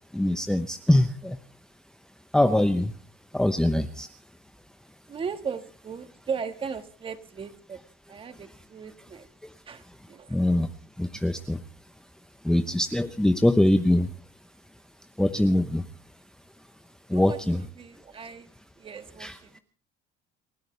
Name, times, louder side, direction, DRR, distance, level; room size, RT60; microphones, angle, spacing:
voice 1, 0.1-1.4 2.3-2.9 3.3-4.1 10.3-10.7 11.0-11.6 12.4-14.1 15.2-15.8 17.1-17.6 19.2-19.3, left 1 dB, 5° left, 8 dB, 0.9 m, -23 dB
voice 2, 5.1-7.8 8.1-9.3 9.6-10.4 17.1-18.5 18.8-19.6, right 6 dB, 25° right, 9 dB, 1.7 m, -37 dB
30.0 x 13.5 x 3.3 m, 0.39 s
cardioid pair, 155°, 20 cm